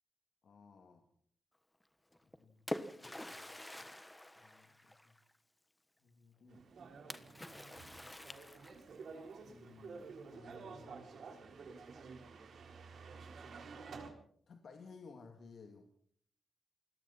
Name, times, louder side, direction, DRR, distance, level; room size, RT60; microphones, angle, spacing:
voice 1, 0.4-1.1 2.4-2.6 2.9-3.9 4.4-5.1 6.0-6.7 7.0-7.8 9.4-11.2 14.5-15.8, left 4 dB, 65° left, 4 dB, 2.3 m, -58 dB
Splash splatter, 2.1-5.3 7.1-9.0, left 1 dB, 10° left, 1.3 m, -46 dB
sound 1, 6.5-14.1, right 4 dB, 70° right, 4.3 m, -51 dB
28.5 x 21.5 x 4.3 m, 0.62 s
wide cardioid pair, 130°, 0 cm